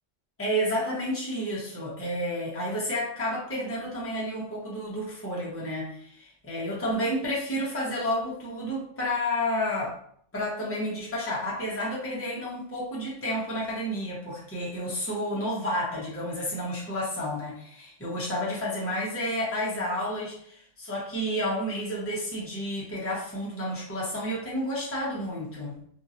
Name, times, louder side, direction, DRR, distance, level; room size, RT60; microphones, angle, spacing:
voice 1, 0.4-10.0 10.3-25.8, equal, 15° left, -6 dB, 0.7 m, -31 dB
2.9 x 2.7 x 2.5 m, 0.63 s
omnidirectional pair, 1.2 m